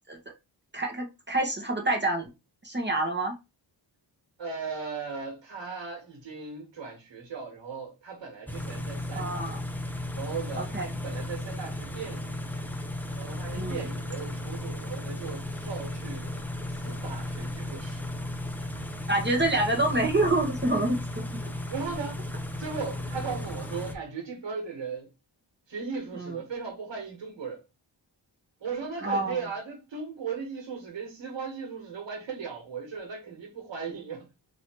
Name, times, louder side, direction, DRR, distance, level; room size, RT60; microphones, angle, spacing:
voice 1, 0.7-2.3 2.6-3.3 9.1-9.6 10.5-10.8 13.6-13.8 19.1-21.2 26.2-26.4 29.0-29.4, right 2 dB, 25° right, 1.1 m, -27 dB
voice 2, 4.4-9.5 10.1-12.4 13.1-16.3 16.7-18.0 21.7-22.3 22.6-25.1 25.7-27.6 28.6-34.3, right 5 dB, 80° right, 1.6 m, -37 dB
Car / Idling, 8.5-23.9, left 1 dB, 5° left, 0.6 m, -35 dB
3.0 x 2.8 x 4.5 m
wide cardioid pair, 90°, 43 cm